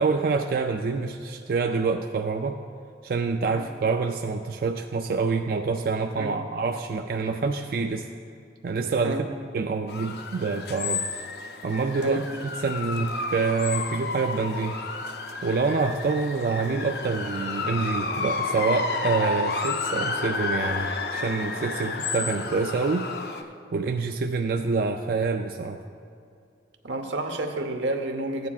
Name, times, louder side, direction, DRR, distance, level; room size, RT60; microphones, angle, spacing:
voice 1, 0.0-2.6 3.0-8.1 8.6-9.3 9.5-11.1 11.6-12.2 12.6-14.8 15.4-23.1 23.4-25.8, right 4 dB, 50° right, 4 dB, 0.3 m, -26 dB
sound 1, 9.9-23.4, left 4 dB, 60° left, 0.5 m, -31 dB
voice 2, 26.8-28.5, right 1 dB, 85° right, 5 dB, 0.9 m, -30 dB
15.0 x 9.2 x 2.4 m, 2.4 s
head